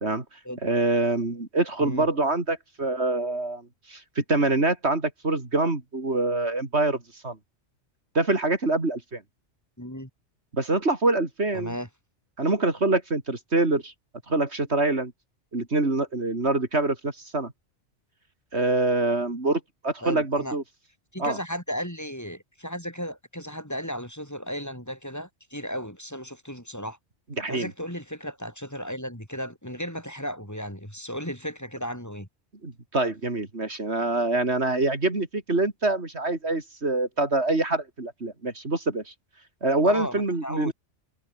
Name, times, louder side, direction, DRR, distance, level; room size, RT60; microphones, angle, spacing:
voice 1, 0.6-7.4 8.2-9.2 10.5-11.8 12.4-13.9 14.3-15.1 15.5-17.5 18.5-20.6 21.2-21.4 27.4-27.7 32.6-39.1 39.6-40.7, right 2 dB, 70° right, 3.8 m, -25 dB
voice 2, 9.8-10.1 11.5-11.9 20.0-20.6 21.1-27.0 27.5-32.3 39.8-40.7, equal, 15° left, 6.2 m, -35 dB
omnidirectional pair, 1.2 m